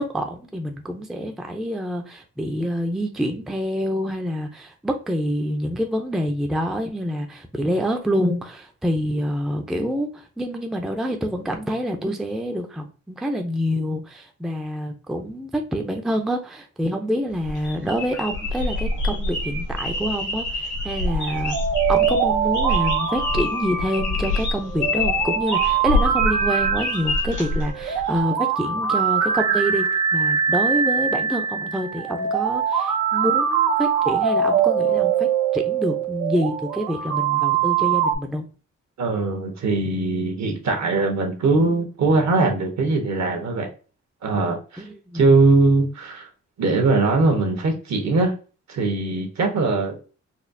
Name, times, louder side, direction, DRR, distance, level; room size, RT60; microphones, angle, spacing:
voice 1, 0.0-21.6 21.9-29.9 30.1-38.5 44.8-45.3, equal, ahead, 0.4 m, -27 dB
sound 1, 17.3-28.2, left 2 dB, 85° left, 1.4 m, -27 dB
sound 2, 21.0-38.1, right 7 dB, 90° right, 0.7 m, -23 dB
voice 2, 39.0-43.7 44.2-44.8 45.1-46.3 46.6-48.3 48.7-50.0, right 3 dB, 65° right, 1.1 m, -21 dB
4.1 x 2.3 x 2.5 m
wide cardioid pair, 120°, 29 cm